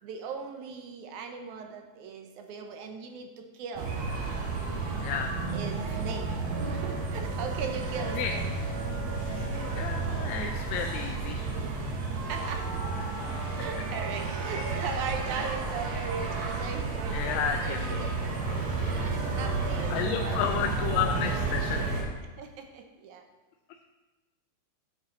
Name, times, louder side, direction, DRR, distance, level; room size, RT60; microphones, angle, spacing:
voice 1, 0.0-3.9 5.5-6.3 6.6-8.5 12.2-12.7 13.5-18.1 18.8-20.9 22.4-23.2, right 5 dB, 75° right, 5 dB, 2.0 m, -39 dB
sound 1, 3.8-22.0, right 3 dB, 90° right, 3.2 m, -31 dB
voice 2, 5.0-5.3 8.1-8.3 9.5-11.5 17.1-18.0 18.5-18.9 19.9-22.1, left 8 dB, 90° left, 4 dB, 2.3 m, -32 dB
12.5 x 7.4 x 3.8 m, 1.2 s
omnidirectional pair, 3.9 m